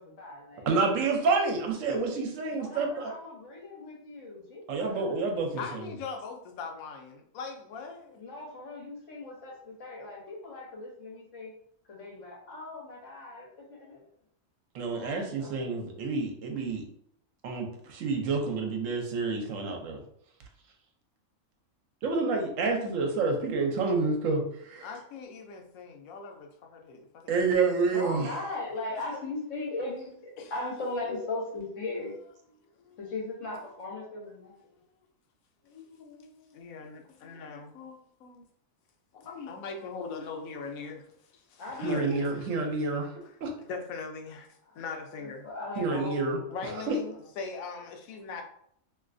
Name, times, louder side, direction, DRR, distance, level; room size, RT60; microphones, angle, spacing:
voice 1, 0.0-0.7 2.5-5.3 8.2-11.5 11.9-14.0 14.9-15.5 27.8-32.1 33.0-34.5 41.6-42.3 44.7-44.8 45.2-46.8, left 2 dB, 70° left, -1 dB, 1.3 m, -38 dB
voice 2, 0.6-3.1 4.7-5.8 14.7-16.8 17.4-20.0 22.0-24.9 27.3-28.3 41.8-43.1 43.4-43.5 45.8-46.4 46.9-47.0, right 4 dB, 75° right, 3 dB, 1.0 m, -28 dB
voice 3, 5.6-8.2 24.8-27.1 27.7-27.9 30.4-30.5 32.8-33.0 35.6-38.4 39.1-44.5 44.7-45.5 46.5-48.4, left 5 dB, 90° left, 3 dB, 1.0 m, -41 dB
3.1 x 2.8 x 2.5 m, 0.68 s
omnidirectional pair, 1.4 m